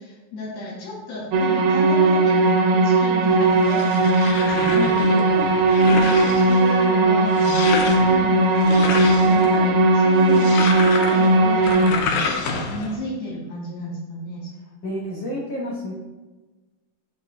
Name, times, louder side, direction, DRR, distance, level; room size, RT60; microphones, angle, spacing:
voice 1, 0.0-14.5, left 1 dB, 70° left, -6 dB, 3.3 m, -33 dB
sound 1, 1.3-11.9, right 2 dB, 75° right, 2.4 m, -18 dB
sound 2, 3.3-13.0, left 5 dB, 85° left, 1.7 m, -30 dB
voice 2, 4.7-5.6 5.9-6.4 14.8-15.9, left 1 dB, 50° left, -6 dB, 2.1 m, -30 dB
12.0 x 4.2 x 2.5 m, 1.2 s
omnidirectional pair, 4.5 m